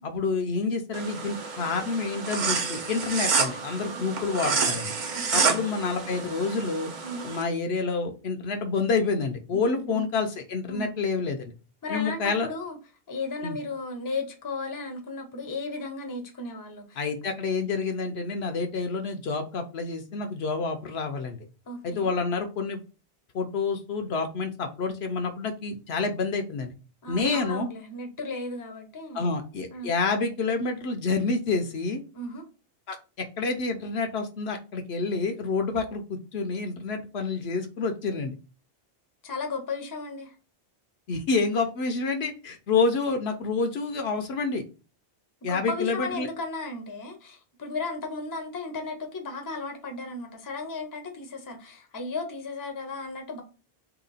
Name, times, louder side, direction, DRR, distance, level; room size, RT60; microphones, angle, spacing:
voice 1, 0.0-4.9 5.3-6.9 7.2-11.5 11.9-12.5 13.4-13.6 17.0-21.4 21.8-22.8 23.3-26.7 27.1-27.7 29.1-32.0 32.9-33.0 33.4-38.3 41.1-44.6 45.4-46.3, left 4 dB, 70° left, 0.8 m, -28 dB
sound 1, 0.9-7.4, right 5 dB, 50° right, 0.6 m, -29 dB
voice 2, 5.1-5.5 7.0-7.3 9.5-10.1 10.7-11.0 11.8-12.8 13.1-17.0 21.7-22.1 27.0-29.3 29.7-29.9 32.1-32.4 39.2-40.3 45.4-53.4, left 3 dB, 20° left, 0.6 m, -35 dB
2.9 x 2.9 x 3.9 m
omnidirectional pair, 1.2 m